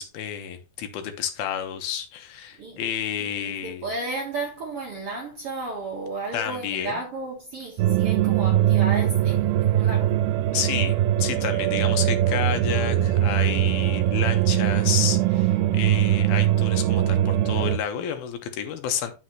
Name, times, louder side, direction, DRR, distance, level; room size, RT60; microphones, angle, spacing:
voice 1, 0.0-3.8 6.3-7.0 10.5-19.1, left 9 dB, 85° left, 3.0 m, -30 dB
voice 2, 3.2-10.2, right 3 dB, 60° right, 1.5 m, -33 dB
sound 1, 7.8-17.8, right 12 dB, 85° right, 2.4 m, -21 dB
9.6 x 6.4 x 3.0 m
omnidirectional pair, 4.3 m